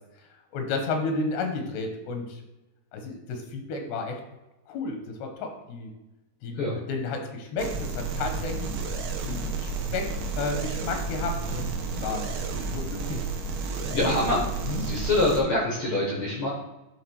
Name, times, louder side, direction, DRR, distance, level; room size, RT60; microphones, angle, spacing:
voice 1, 0.2-2.4 2.9-4.2 4.7-5.9 6.4-8.7 9.3-12.3 12.7-13.3 13.9-14.1 14.6-14.8, left 3 dB, 80° left, 4 dB, 3.3 m, -32 dB
sound 1, 7.6-15.4, right 3 dB, 70° right, 2.3 m, -31 dB
voice 2, 13.9-14.4 14.8-16.5, left 2 dB, 65° left, -3 dB, 1.3 m, -25 dB
11.5 x 3.9 x 4.7 m, 1.0 s
omnidirectional pair, 4.7 m